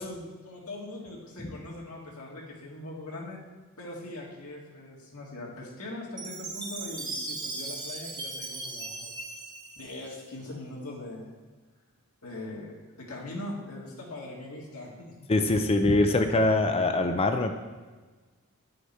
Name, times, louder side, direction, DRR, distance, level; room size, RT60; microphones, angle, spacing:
voice 1, 0.0-3.4 3.8-9.2 9.8-11.3 12.2-15.1, left 1 dB, 70° left, -3 dB, 2.0 m, -41 dB
Chime, 6.2-10.5, right 2 dB, 20° right, 1.2 m, -38 dB
voice 2, 15.3-17.5, left 2 dB, 25° left, 7 dB, 0.5 m, -23 dB
9.4 x 6.4 x 4.4 m, 1.3 s
head